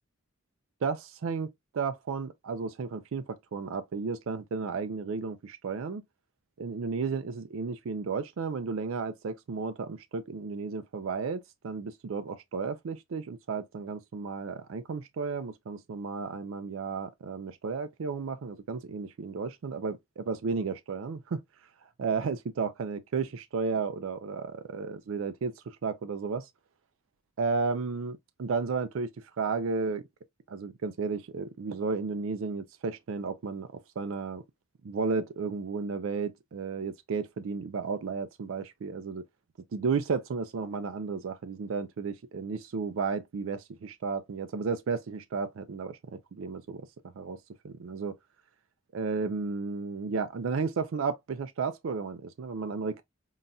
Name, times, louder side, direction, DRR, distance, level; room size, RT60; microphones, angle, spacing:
voice 1, 0.8-6.0 6.6-21.4 22.0-26.5 27.4-30.0 30.5-34.4 34.8-39.2 39.7-46.9 47.2-47.4 47.6-48.2 48.9-53.0, right 5 dB, 70° right, 0.4 m, -33 dB
5.5 x 2.2 x 2.5 m
head